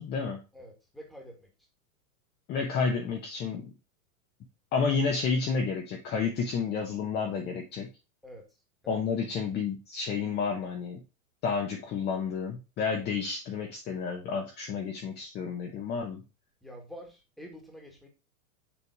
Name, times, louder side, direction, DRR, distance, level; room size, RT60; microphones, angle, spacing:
voice 1, 0.0-0.4 2.5-3.7 4.7-7.9 8.9-11.0 11.4-16.2, left 5 dB, 20° left, 2 dB, 0.8 m, -30 dB
voice 2, 0.5-1.5 8.2-8.4 8.8-9.0 16.6-18.1, equal, ahead, 2 dB, 1.5 m, -47 dB
7.0 x 3.5 x 4.5 m, 0.28 s
hypercardioid pair, 140°, 45 cm